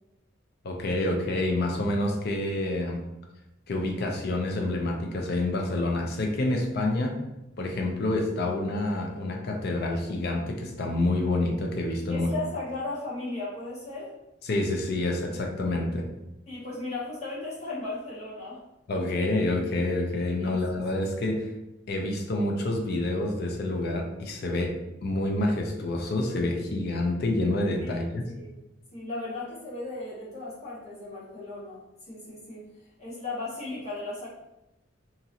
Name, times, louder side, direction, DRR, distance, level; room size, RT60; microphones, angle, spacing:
voice 1, 0.6-3.0 3.7-7.2 7.6-12.3 14.4-16.1 18.9-21.5 21.9-24.7 25.0-28.3, left 2 dB, 55° left, 2 dB, 0.4 m, -28 dB
voice 2, 12.1-14.1 16.5-18.6 20.4-20.6 27.8-28.5 28.9-32.6 33.0-34.3, left 2 dB, 35° left, -8 dB, 1.2 m, -36 dB
2.9 x 2.5 x 2.7 m, 0.93 s
head